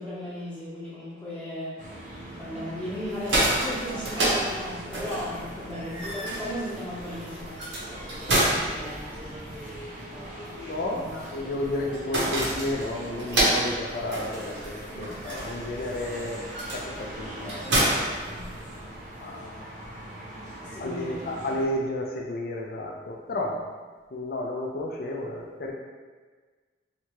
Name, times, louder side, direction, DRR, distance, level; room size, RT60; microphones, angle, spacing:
voice 1, 0.0-1.8 2.4-7.7 8.2-10.6 10.8-11.5 14.9-15.2 18.2-18.5 20.6-21.4 23.4-23.6, left 1 dB, 5° left, -11 dB, 0.7 m, -37 dB
sound 1, 1.8-21.7, right 1 dB, 40° right, 0.5 m, -42 dB
sound 2, 3.0-19.0, right 1 dB, 80° right, 0.7 m, -30 dB
voice 2, 10.6-16.4 16.7-18.2 19.2-19.7 20.8-23.6 24.1-25.7, left 1 dB, 50° left, 0 dB, 0.4 m, -32 dB
2.8 x 2.2 x 2.9 m, 1.4 s
head